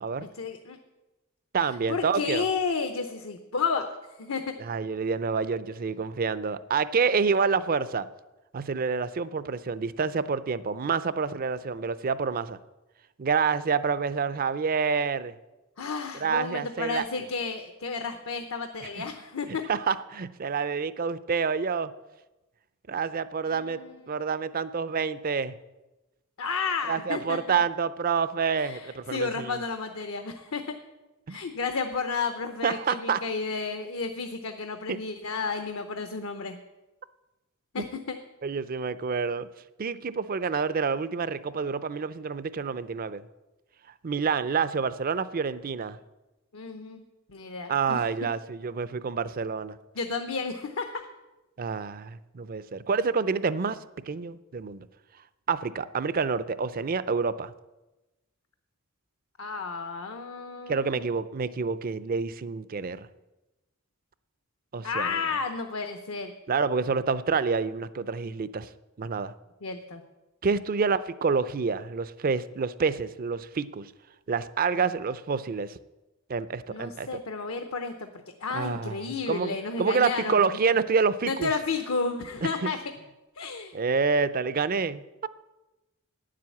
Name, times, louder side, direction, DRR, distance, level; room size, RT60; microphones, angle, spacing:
voice 1, 0.3-0.8 1.9-3.9 4.2-4.5 15.8-19.6 23.5-24.0 26.4-27.4 28.5-30.7 31.3-36.6 37.7-38.2 46.5-48.0 49.9-51.0 59.4-61.0 64.8-66.3 69.6-70.0 76.7-78.1 78.4-80.4 81.2-82.8 83.3-83.8, left 4 dB, 70° left, 7 dB, 0.8 m, -32 dB
voice 2, 1.5-2.5 4.6-8.1 8.5-12.6 13.2-15.3 16.2-17.0 18.8-19.0 19.7-21.9 22.9-25.5 26.9-29.6 31.3-31.4 32.6-33.2 34.9-35.0 38.4-39.5 39.8-43.2 44.0-46.0 47.7-49.8 51.6-53.8 54.1-54.9 55.5-57.5 60.7-63.1 64.7-65.2 66.5-68.7 69.0-69.3 70.4-73.9 74.3-75.8 76.3-77.1 78.5-81.5 82.6-82.7 83.7-85.3, right 5 dB, 40° right, 15 dB, 0.5 m, -28 dB
10.0 x 7.6 x 8.4 m, 1.1 s
head